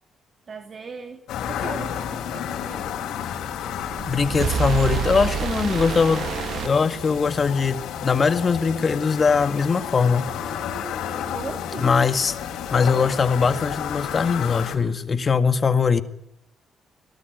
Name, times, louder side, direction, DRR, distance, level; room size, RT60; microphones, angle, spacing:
voice 1, 0.5-3.1 11.3-11.9, right 5 dB, 40° right, 2.5 m, -38 dB
sound 1, 1.3-14.8, left 9 dB, 85° left, 4.7 m, -32 dB
sound 2, 3.7-7.5, right 8 dB, 65° right, 1.4 m, -28 dB
voice 2, 4.1-6.3 6.6-10.3 11.8-12.4 12.7-16.0, left 5 dB, 40° left, 1.9 m, -21 dB
26.0 x 19.5 x 9.4 m
cardioid pair, 90°, 0 cm